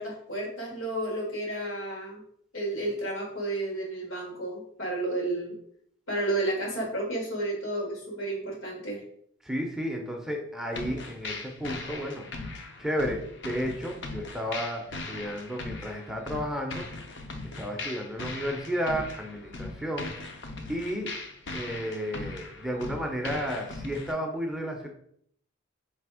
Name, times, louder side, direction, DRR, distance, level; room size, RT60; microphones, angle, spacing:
voice 1, 0.0-2.2 2.5-5.6 6.1-9.0, right 1 dB, 85° left, -3 dB, 1.9 m, -32 dB
voice 2, 9.4-12.5 12.8-16.8 17.6-20.3 20.7-21.1 21.5-24.9, equal, ahead, 1 dB, 0.5 m, -32 dB
sound 1, 10.7-24.1, left 3 dB, 60° left, 0.7 m, -39 dB
3.4 x 3.3 x 4.8 m, 0.67 s
head